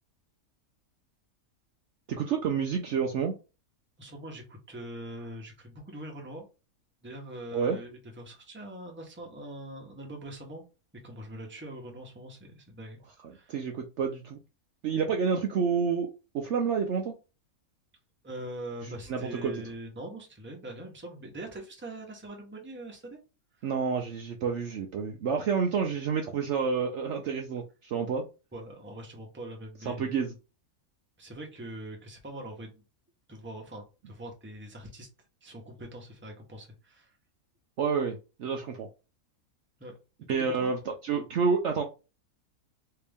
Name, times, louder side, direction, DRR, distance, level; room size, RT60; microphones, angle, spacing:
voice 1, 2.1-3.3 7.5-7.8 13.5-14.4 14.8-17.1 18.8-19.5 23.6-28.3 29.8-30.4 37.8-38.9 40.3-41.8, right 6 dB, 65° right, 0.8 m, -29 dB
voice 2, 4.0-6.5 7.0-10.6 10.9-13.0 13.3-13.5 18.2-23.2 23.6-23.7 28.5-30.1 31.2-32.8 33.3-35.1 35.4-37.1 39.8-39.9 40.4-40.7, right 1 dB, 10° right, 0.8 m, -42 dB
3.3 x 2.8 x 3.4 m
omnidirectional pair, 1.5 m